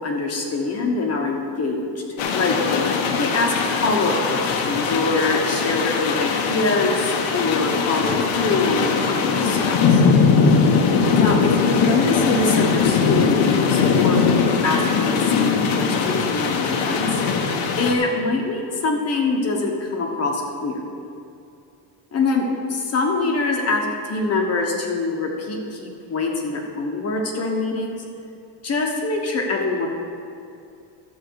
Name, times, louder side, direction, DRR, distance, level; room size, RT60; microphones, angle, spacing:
voice 1, 0.0-2.0 2.3-2.6 3.1-3.5 3.8-10.0 11.1-17.2 17.8-20.8 22.1-28.0 28.6-29.9, left 3 dB, 30° left, 2 dB, 1.1 m, -24 dB
sound 1, 2.2-17.9, left 5 dB, 65° left, 1.1 m, -20 dB
13.0 x 7.7 x 4.7 m, 2.5 s
cardioid pair, 180°, 50 cm